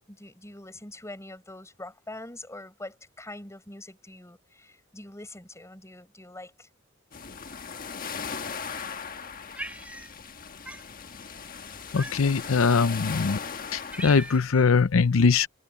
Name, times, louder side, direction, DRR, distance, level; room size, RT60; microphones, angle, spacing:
voice 1, 0.1-6.7, left 1 dB, 15° left, 6.5 m, -44 dB
sound 1, 7.1-14.4, left 6 dB, 45° left, 1.4 m, -38 dB
Cat, 9.5-10.4 10.6-10.9 11.9-12.5 13.2-13.3 13.6-14.6, right 1 dB, 5° right, 6.5 m, -40 dB
voice 2, 11.9-13.4 13.7-15.5, left 5 dB, 85° left, 0.6 m, -22 dB
head